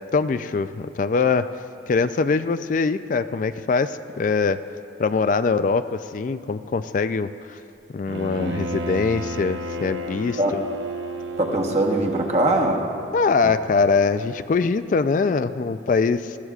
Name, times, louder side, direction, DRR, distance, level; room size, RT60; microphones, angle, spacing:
voice 1, 0.1-4.6 5.0-7.6 7.9-10.6 13.1-16.4, left 4 dB, 45° left, 12 dB, 0.3 m, -23 dB
Bowed string instrument, 8.1-12.9, right 1 dB, 90° right, 0.7 m, -32 dB
voice 2, 11.4-12.9 13.4-13.5, right 1 dB, 35° right, 1 dB, 1.1 m, -22 dB
20.0 x 15.0 x 2.4 m, 2.6 s
head